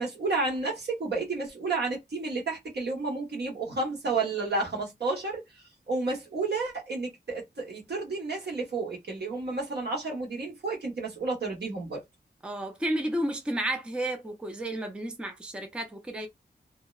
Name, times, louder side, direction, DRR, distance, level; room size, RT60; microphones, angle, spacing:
voice 1, 0.0-12.0, right 3 dB, 65° right, 1.2 m, -31 dB
voice 2, 12.4-16.3, right 1 dB, 5° right, 0.4 m, -32 dB
2.7 x 2.0 x 2.3 m
wide cardioid pair, 115°, 18 cm